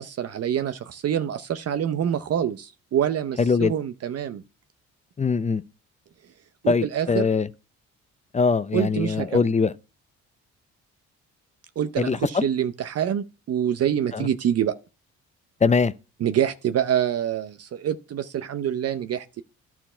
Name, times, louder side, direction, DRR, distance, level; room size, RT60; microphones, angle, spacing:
voice 1, 0.0-4.4 6.6-7.3 8.7-9.4 11.8-14.7 16.2-19.4, right 9 dB, 55° right, 0.7 m, -26 dB
voice 2, 3.4-3.7 5.2-5.6 6.7-7.5 8.3-9.7 12.0-12.5 14.1-14.3 15.6-15.9, left 5 dB, 25° left, 0.6 m, -22 dB
11.5 x 4.6 x 4.4 m
cardioid pair, 90°, 30 cm